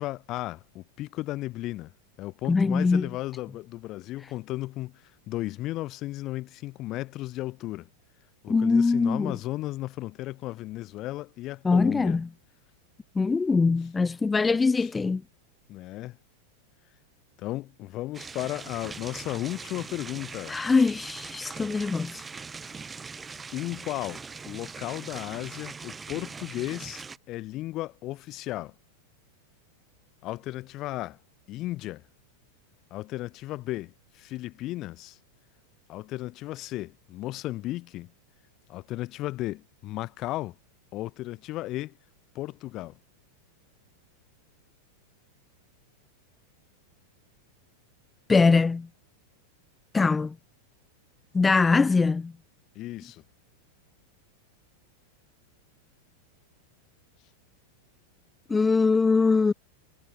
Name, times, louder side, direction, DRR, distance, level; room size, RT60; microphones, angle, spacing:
voice 1, 0.0-1.9 2.2-7.9 8.4-12.2 14.8-14.9 15.7-16.2 17.4-20.6 23.5-28.7 30.2-31.2 31.5-32.0 32.9-35.2 35.9-38.1 38.7-40.5 40.9-42.0 42.3-43.0 52.7-53.2, left 17 dB, 35° left, 1.1 m, -35 dB
voice 2, 2.5-3.1 8.5-9.4 11.6-12.3 13.2-15.2 20.5-22.3 48.3-48.9 49.9-50.3 51.3-52.3 58.5-59.5, left 4 dB, 15° left, 0.8 m, -22 dB
sound 1, 18.1-27.2, right 5 dB, 15° right, 2.4 m, -41 dB
figure-of-eight pair, 90°, 0 cm